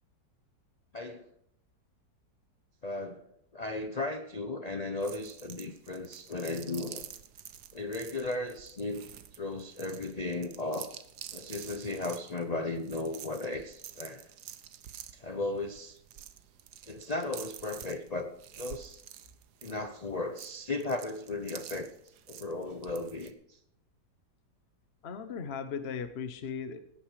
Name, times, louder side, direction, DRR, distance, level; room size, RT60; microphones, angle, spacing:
voice 1, 0.9-1.3 2.8-3.2 3.5-7.1 7.7-11.0 11.3-14.3 14.7-14.8 15.1-16.0 16.9-19.0 19.6-21.9 22.3-23.6, left 2 dB, 75° left, 7 dB, 0.3 m, -36 dB
sound 1, 5.0-23.3, right 10 dB, 65° right, 1.3 m, -49 dB
voice 2, 25.0-26.8, left 6 dB, 45° left, 10 dB, 1.0 m, -37 dB
17.0 x 9.1 x 4.9 m, 0.74 s
omnidirectional pair, 2.0 m